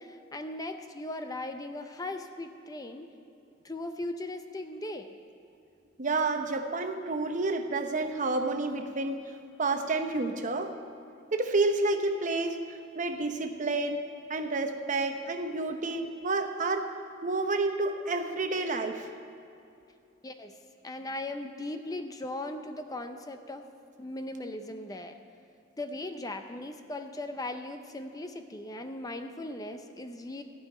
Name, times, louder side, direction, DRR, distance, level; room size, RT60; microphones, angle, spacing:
voice 1, 0.0-3.1 3.6-5.1 20.2-20.5 20.8-23.6 24.0-25.2 25.8-30.4, left 1 dB, 20° left, 7 dB, 0.5 m, -38 dB
voice 2, 6.0-9.3 9.6-10.7 11.3-12.6 12.9-14.0 14.3-16.9 17.2-19.1, right 3 dB, 40° right, 6 dB, 0.8 m, -29 dB
14.5 x 5.5 x 9.2 m, 2.6 s
head